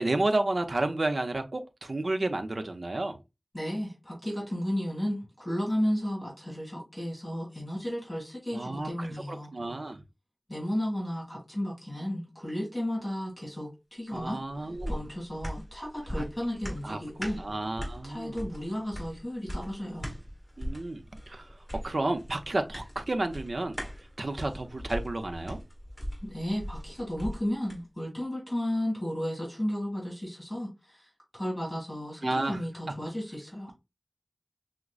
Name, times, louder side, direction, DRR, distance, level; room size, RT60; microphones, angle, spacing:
voice 1, 0.0-3.2 8.5-10.0 14.1-14.9 16.1-16.3 16.8-17.0 17.4-18.5 20.6-21.6 21.8-23.8 24.2-25.6 32.2-32.6, right 2 dB, 70° right, 0.6 m, -31 dB
voice 2, 3.5-9.5 10.5-14.4 14.9-17.4 18.0-20.1 26.2-31.1 31.3-33.7, equal, 30° left, 2.4 m, -33 dB
sound 1, 14.1-27.8 28.2-28.3, equal, 5° left, 2.1 m, -40 dB
6.0 x 2.1 x 2.3 m
wide cardioid pair, 55°, 0 cm